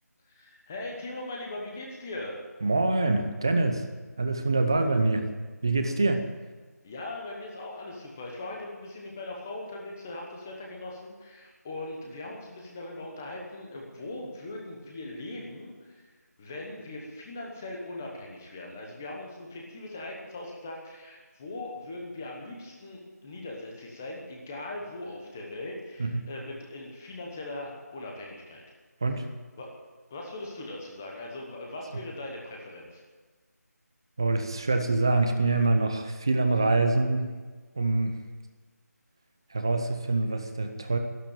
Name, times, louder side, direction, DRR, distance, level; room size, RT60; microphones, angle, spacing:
voice 1, 0.3-2.4 6.8-16.1 16.4-28.6 29.6-29.7 30.1-33.0, left 2 dB, 10° left, 0 dB, 1.0 m, -40 dB
voice 2, 2.6-3.8 4.2-5.3 5.6-6.3 26.0-26.3 29.0-29.3 34.2-37.4 37.7-38.2 39.5-41.0, right 2 dB, 15° right, 6 dB, 0.7 m, -25 dB
13.0 x 12.0 x 9.0 m, 1.4 s
figure-of-eight pair, 175°, 9 cm